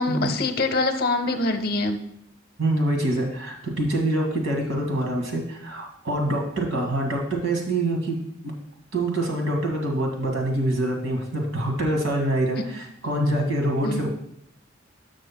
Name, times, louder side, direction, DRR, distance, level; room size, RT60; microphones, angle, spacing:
voice 1, 0.0-2.0 12.5-12.6 13.8-14.0, left 2 dB, 50° left, 8 dB, 0.7 m, -24 dB
voice 2, 2.6-8.2 8.4-8.5 8.9-14.1, right 1 dB, 85° right, 1 dB, 1.9 m, -25 dB
13.0 x 6.3 x 2.2 m, 0.70 s
head